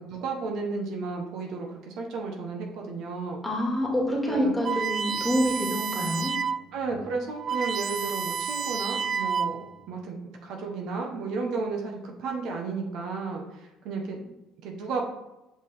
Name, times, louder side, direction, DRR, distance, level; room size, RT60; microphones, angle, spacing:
voice 1, 0.0-3.4 4.2-4.5 6.7-10.2 10.4-14.4 14.6-15.1, right 4 dB, 70° right, 2 dB, 1.1 m, -33 dB
voice 2, 3.4-6.3, equal, 5° left, -2 dB, 2.1 m, -26 dB
sound 1, 4.6-6.7 7.0-7.1 7.3-9.8, right 6 dB, 40° right, 0.4 m, -30 dB
6.1 x 5.1 x 3.5 m, 0.97 s
cardioid pair, 100°, 0 cm